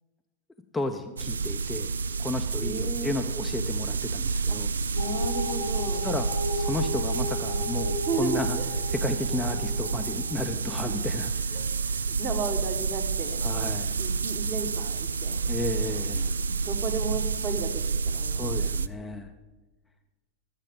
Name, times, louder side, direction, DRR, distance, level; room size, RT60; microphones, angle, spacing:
voice 1, 0.7-1.9 2.2-4.7 6.0-6.3 6.5-8.6 8.9-11.3 13.4-14.0 15.5-16.3 18.4-19.3, left 2 dB, 10° left, 4 dB, 0.6 m, -33 dB
sound 1, 1.2-18.9, right 5 dB, 70° right, 0.3 m, -29 dB
voice 2, 2.5-3.1 4.5-4.6 4.9-6.1 8.1-8.7 9.3-9.5 10.8-10.9 11.5-15.4 15.8-18.7, right 4 dB, 30° right, 4 dB, 1.4 m, -35 dB
sound 2, 5.0-10.5, left 1 dB, 55° left, 0.8 m, -35 dB
13.0 x 7.4 x 5.3 m, 1.2 s
figure-of-eight pair, 90°, 0 cm